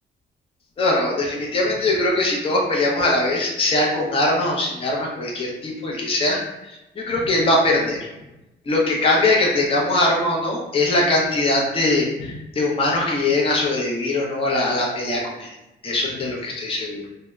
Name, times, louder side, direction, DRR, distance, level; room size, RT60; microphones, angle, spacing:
voice 1, 0.8-8.0 8.7-15.5 15.8-17.0, left 2 dB, 30° left, -2 dB, 0.5 m, -21 dB
2.7 x 2.0 x 2.2 m, 0.96 s
cardioid pair, 90°, 20 cm